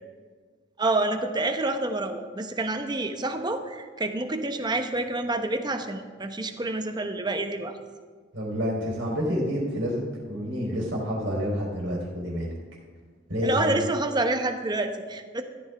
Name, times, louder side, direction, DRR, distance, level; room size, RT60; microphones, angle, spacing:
voice 1, 0.8-7.8 13.4-15.4, right 2 dB, 25° right, 7 dB, 0.9 m, -28 dB
voice 2, 8.3-12.5 13.3-13.8, equal, 70° right, -2 dB, 3.7 m, -28 dB
14.5 x 12.5 x 3.4 m, 1.5 s
head